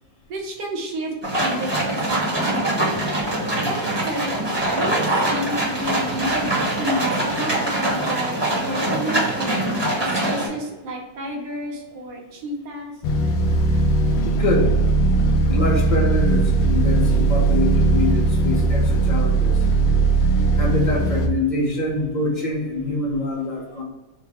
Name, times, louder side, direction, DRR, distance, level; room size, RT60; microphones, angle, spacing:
voice 1, 0.3-2.6 3.7-9.6 10.0-12.9, right 1 dB, 70° right, -1 dB, 1.5 m, -30 dB
sound 1, 1.2-10.5, right 1 dB, 15° right, 0.9 m, -23 dB
sound 2, 13.0-21.3, right 2 dB, 65° left, 0.9 m, -19 dB
voice 2, 14.2-14.7 15.5-19.7 20.1-23.8, left 2 dB, 40° left, -2 dB, 0.6 m, -25 dB
4.5 x 2.2 x 4.7 m, 1.1 s
omnidirectional pair, 2.0 m